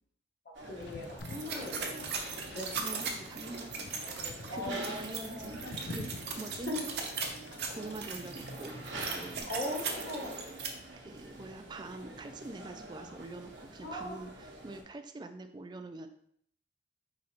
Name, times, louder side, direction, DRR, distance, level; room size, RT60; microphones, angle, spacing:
sound 1, 0.5-14.8, right 1 dB, 90° right, 0.9 m, -46 dB
voice 1, 0.6-2.7 4.5-5.7 6.7-6.8 9.5-10.3 13.8-14.2, left 1 dB, 55° left, -3 dB, 1.3 m, -40 dB
Wind / Boat Water vehicle, 0.8-9.4, left 3 dB, 70° left, 0.4 m, -49 dB
sound 2, 1.2-10.7, right 5 dB, 60° right, 0.7 m, -39 dB
voice 2, 2.8-3.9 4.3-6.8 7.7-9.5 11.0-16.1, right 2 dB, 25° right, 7 dB, 0.3 m, -44 dB
4.9 x 3.0 x 2.9 m, 0.64 s
head